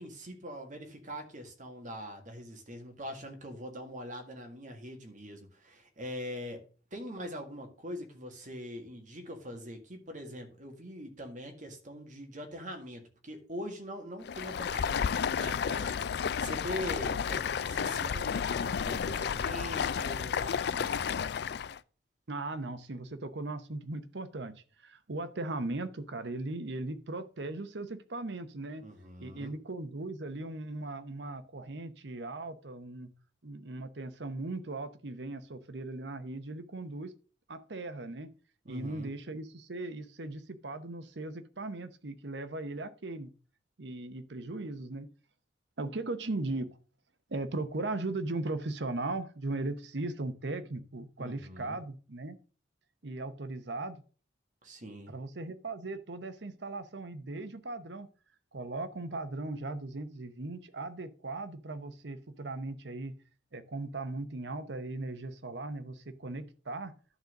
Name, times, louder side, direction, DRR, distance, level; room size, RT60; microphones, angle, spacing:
voice 1, 0.0-6.6 6.9-21.0 28.8-29.5 38.7-39.1 51.2-51.8 54.6-55.1, equal, 40° right, 1.8 m, -43 dB
Stream, 14.2-21.8, left 7 dB, 60° left, 0.4 m, -32 dB
voice 2, 22.3-28.8 29.2-33.1 33.4-37.1 37.5-38.3 38.7-43.3 43.8-45.1 45.8-46.7 47.3-52.4 53.0-54.0 55.1-58.1 58.5-63.1 63.5-66.9, right 2 dB, 65° right, 0.8 m, -38 dB
11.0 x 4.0 x 6.4 m
head